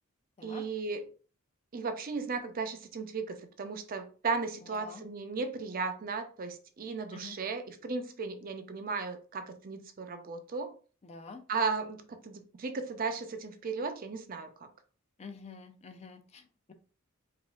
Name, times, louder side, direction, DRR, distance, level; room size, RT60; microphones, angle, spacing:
voice 1, 0.4-1.0 1.7-10.7 11.5-14.7, right 4 dB, 40° right, 7 dB, 0.5 m, -35 dB
voice 2, 4.6-5.0 7.1-7.4 11.0-11.4 15.2-16.7, left 4 dB, 30° left, 7 dB, 0.4 m, -48 dB
4.9 x 2.5 x 2.3 m, 0.38 s
head